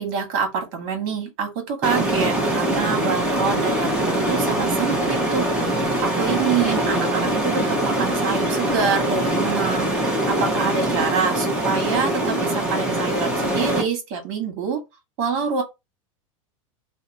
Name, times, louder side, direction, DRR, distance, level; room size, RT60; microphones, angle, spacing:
voice 1, 0.0-14.8 15.2-15.6, right 6 dB, 50° right, 1.4 m, -26 dB
sound 1, 1.8-13.8, right 1 dB, 5° right, 0.9 m, -23 dB
2.8 x 2.1 x 4.0 m
supercardioid pair, 140°, 18 cm